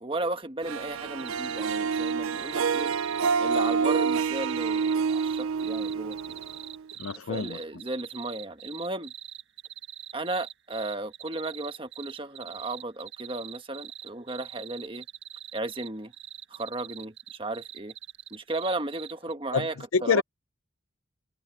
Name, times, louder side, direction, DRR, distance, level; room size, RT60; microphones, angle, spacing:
voice 1, 0.0-2.9 3.4-6.4 7.2-9.1 10.1-15.0 15.5-16.1 16.5-17.9 18.3-19.7 20.0-20.2, right 2 dB, 25° right, 1.4 m, -34 dB
Harp, 0.6-6.9, right 5 dB, 90° right, 0.5 m, -28 dB
sound 1, 1.2-19.3, right 11 dB, 55° right, 1.9 m, -43 dB
voice 2, 7.0-7.6 19.5-19.7 19.9-20.2, left 5 dB, 80° left, 0.6 m, -26 dB
head